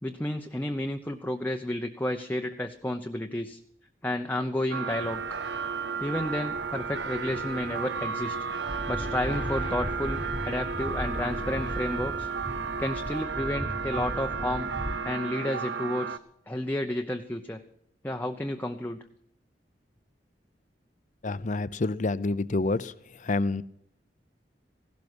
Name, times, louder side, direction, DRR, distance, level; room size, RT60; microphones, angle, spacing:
voice 1, 0.0-3.6 4.0-5.4 6.0-8.4 8.9-12.3 12.8-16.2 16.5-17.6 18.0-19.0, left 1 dB, 10° left, 4 dB, 0.8 m, -31 dB
sound 1, 4.7-16.2, right 5 dB, 85° right, 0.9 m, -33 dB
sound 2, 4.9-13.2, left 3 dB, 80° left, 0.9 m, -47 dB
sound 3, 8.7-15.0, equal, 5° right, 1.5 m, -37 dB
voice 2, 21.2-22.9 23.2-23.6, left 3 dB, 45° left, 17 dB, 0.6 m, -28 dB
16.5 x 12.5 x 6.2 m, 0.71 s
head